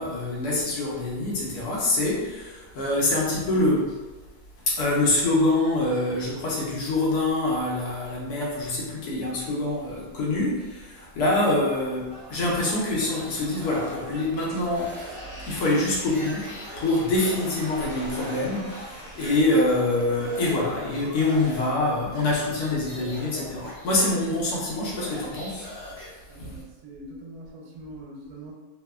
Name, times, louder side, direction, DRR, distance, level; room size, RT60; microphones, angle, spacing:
voice 1, 0.0-4.0 4.7-15.0 15.5-25.7 26.4-26.5, left 2 dB, 85° left, -5 dB, 1.3 m, -25 dB
sound 1, 12.1-21.4, right 2 dB, 70° right, 0.8 m, -45 dB
sound 2, 12.8-14.3 14.7-18.4 18.7-18.8 19.2-20.6 20.9-26.1, left 1 dB, 5° left, 0.6 m, -42 dB
sound 3, 13.1-19.3, equal, 45° left, 1.0 m, -44 dB
voice 2, 26.3-28.5, right 1 dB, 90° right, -2 dB, 1.2 m, -43 dB
3.1 x 2.1 x 2.3 m, 1.2 s
omnidirectional pair, 1.6 m